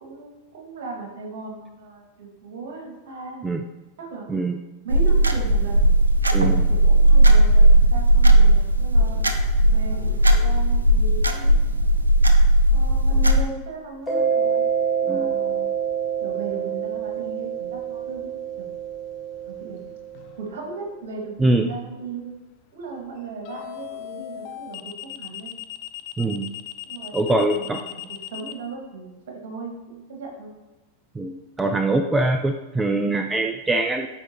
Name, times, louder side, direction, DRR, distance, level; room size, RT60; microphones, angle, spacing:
voice 1, 0.0-3.5 4.0-4.4 4.8-5.9 6.7-9.3 9.7-11.8 12.7-14.7 15.0-15.7 16.2-18.7 19.4-19.8 20.4-22.4 22.7-25.5 26.2-26.4 26.9-30.5, right 4 dB, 55° right, 1 dB, 2.0 m, -37 dB
sound 1, 4.9-13.5, right 1 dB, 80° right, 0.6 m, -16 dB
voice 2, 6.3-6.7 15.1-15.4 21.4-21.7 26.2-26.5 27.1-27.8 31.2-34.1, right 2 dB, 10° right, 6 dB, 0.4 m, -23 dB
Mallet percussion, 14.1-20.4, right 7 dB, 15° left, 1.4 m, -27 dB
sound 2, 20.1-20.5 23.4-28.5, left 14 dB, 45° left, 0.6 m, -37 dB
12.5 x 4.8 x 2.9 m, 1.1 s
figure-of-eight pair, 90°, 0 cm